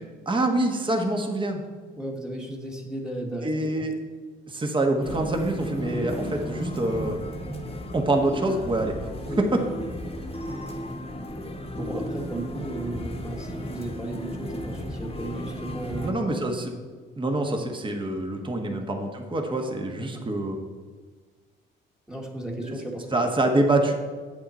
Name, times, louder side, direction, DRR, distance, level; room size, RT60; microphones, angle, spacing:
voice 1, 0.2-1.6 3.4-3.9 4.5-7.2 7.9-8.9 9.4-9.6 11.7-12.0 16.0-16.8 17.2-20.6 22.6-22.7 23.1-23.9, right 2 dB, 25° right, 3 dB, 1.3 m, -25 dB
voice 2, 2.0-3.7 9.3-9.4 11.8-16.5 18.7-18.9 19.9-20.2 22.1-23.2, right 1 dB, 5° right, -1 dB, 1.4 m, -35 dB
sound 1, 5.0-16.1, equal, 30° left, 1.2 m, -34 dB
8.7 x 7.8 x 4.2 m, 1.5 s
cardioid pair, 90°, 20 cm